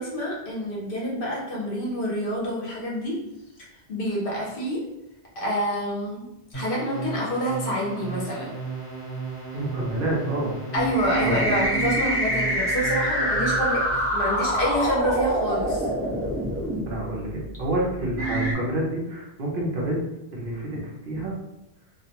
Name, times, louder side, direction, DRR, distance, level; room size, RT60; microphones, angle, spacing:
voice 1, 0.0-3.2 3.9-4.8 5.4-8.5 10.7-13.8 14.1-15.9, equal, 55° left, -4 dB, 0.8 m, -27 dB
sound 1, 6.5-14.1, right 4 dB, 30° left, 1.3 m, -35 dB
voice 2, 9.5-10.5 11.2-11.5 16.9-20.0 20.3-20.8 21.0-21.3, right 1 dB, 60° right, -4 dB, 0.8 m, -28 dB
sound 2, 10.7-16.8 17.5-17.6 18.2-18.5, right 1 dB, 15° right, 0.6 m, -25 dB
2.4 x 2.1 x 2.8 m, 0.89 s
omnidirectional pair, 1.1 m